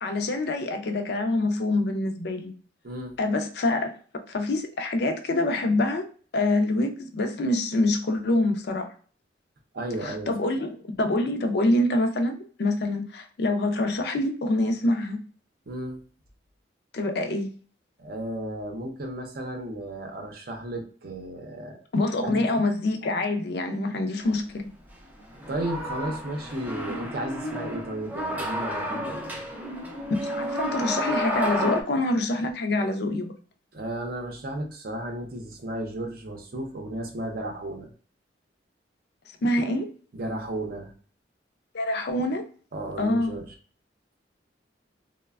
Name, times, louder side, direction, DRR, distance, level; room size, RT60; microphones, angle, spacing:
voice 1, 0.0-2.5 3.2-3.9 4.3-6.1 6.3-8.9 10.0-15.2 16.9-17.5 21.9-24.7 30.2-33.3 39.4-39.9 41.7-42.5 43.0-43.4, left 2 dB, 60° left, 0.4 m, -25 dB
voice 2, 2.8-3.2 9.7-10.3 15.7-16.0 18.0-21.8 22.2-22.3 25.5-29.4 33.7-37.9 40.1-40.9 42.7-43.4, right 1 dB, 55° right, 0.6 m, -34 dB
sound 1, 25.3-31.8, equal, 10° right, 0.4 m, -31 dB
3.1 x 2.1 x 2.3 m
head